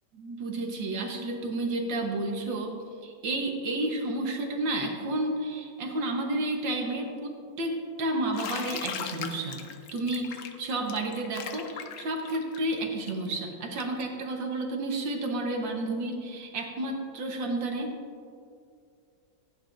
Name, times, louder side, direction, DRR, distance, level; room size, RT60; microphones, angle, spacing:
voice 1, 0.1-2.7 3.0-7.3 7.6-9.6 9.9-17.9, right 2 dB, 85° right, 2 dB, 1.9 m, -31 dB
Bathtub (filling or washing), 8.3-14.0, left 7 dB, 65° left, 0.8 m, -39 dB
15.0 x 9.4 x 2.6 m, 2.4 s
omnidirectional pair, 2.0 m